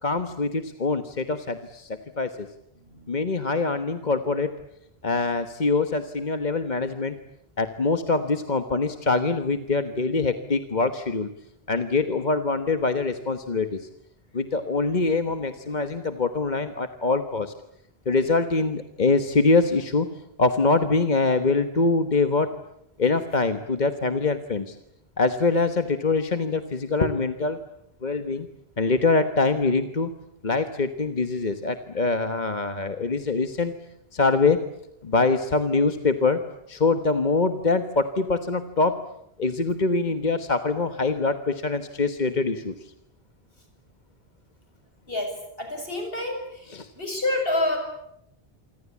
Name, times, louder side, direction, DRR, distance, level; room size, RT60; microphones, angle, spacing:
voice 1, 0.0-2.5 3.1-4.5 5.0-7.2 7.6-11.3 11.7-13.9 14.3-17.5 18.0-20.1 20.4-22.5 23.0-24.8 25.2-27.6 28.0-28.5 28.8-30.1 30.4-33.7 34.1-34.6 35.0-36.4 36.7-39.0 39.4-42.9 46.7-46.9, left 3 dB, 45° left, 9 dB, 1.4 m, -24 dB
voice 2, 2.8-3.4 9.8-10.0 10.3-10.4 45.1-45.3 45.6-47.8, left 2 dB, 65° left, 4 dB, 7.8 m, -29 dB
28.0 x 25.0 x 8.5 m, 0.78 s
omnidirectional pair, 1.0 m